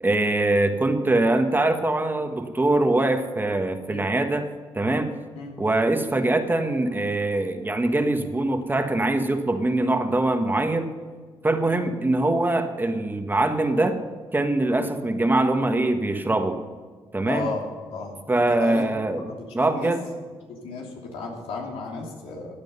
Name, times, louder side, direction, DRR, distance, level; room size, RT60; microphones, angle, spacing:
voice 1, 0.0-4.5 4.7-5.1 5.6-10.9 11.4-14.0 14.3-16.6 17.1-17.5 18.3-19.3 19.5-20.0, right 2 dB, 20° right, 6 dB, 1.5 m, -23 dB
voice 2, 17.2-18.9 19.3-19.5 19.7-19.9 20.5-22.5, left 4 dB, 85° left, 0 dB, 2.9 m, -34 dB
15.0 x 9.0 x 5.6 m, 1.5 s
cardioid pair, 85°, 10 cm